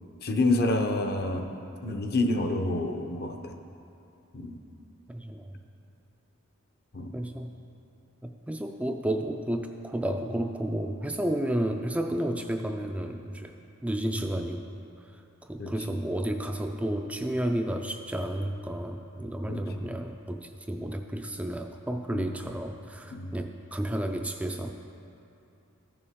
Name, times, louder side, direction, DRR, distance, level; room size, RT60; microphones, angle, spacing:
voice 1, 0.2-1.5 1.8-3.5 4.3-4.6 6.9-7.1 15.6-15.7 19.5-19.6 22.1-22.3 23.1-23.3, left 2 dB, 50° left, 5 dB, 0.7 m, -28 dB
voice 2, 5.1-5.5 7.1-7.6 8.2-13.5 13.8-14.7 15.1-15.2 15.5-24.7, right 1 dB, 5° right, 4 dB, 0.3 m, -31 dB
14.5 x 6.8 x 3.6 m, 2.8 s
head